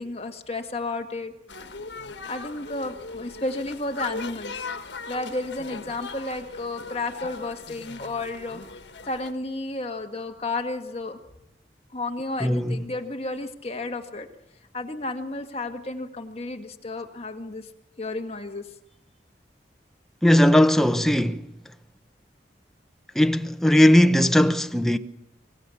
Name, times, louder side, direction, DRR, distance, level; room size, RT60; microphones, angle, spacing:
voice 1, 0.0-1.3 2.3-4.7 5.1-8.6 9.0-11.2 11.9-14.3 14.7-17.7 18.0-18.7, left 2 dB, 35° left, 1.9 m, -32 dB
sound 1, 1.5-9.3, left 4 dB, 85° left, 1.4 m, -39 dB
voice 2, 12.4-12.8 20.2-21.5 23.1-25.0, left 1 dB, ahead, 0.9 m, -18 dB
26.0 x 16.5 x 7.2 m
head